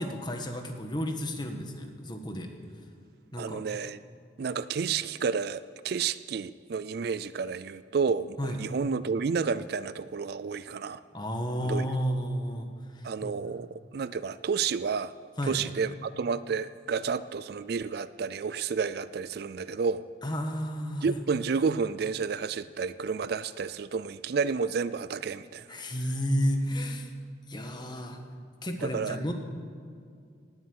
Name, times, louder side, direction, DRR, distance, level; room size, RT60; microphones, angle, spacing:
voice 1, 0.0-2.5 3.3-3.6 8.4-8.6 11.1-13.3 15.4-15.6 20.2-21.2 25.7-27.1 27.5-28.2 28.6-29.3, equal, 20° left, 4 dB, 1.4 m, -32 dB
voice 2, 3.4-4.0 4.4-11.0 11.6-11.9 13.0-15.1 15.5-20.0 21.0-25.7 28.8-29.2, right 5 dB, 55° right, 15 dB, 0.4 m, -30 dB
18.5 x 8.1 x 8.1 m, 2.2 s
head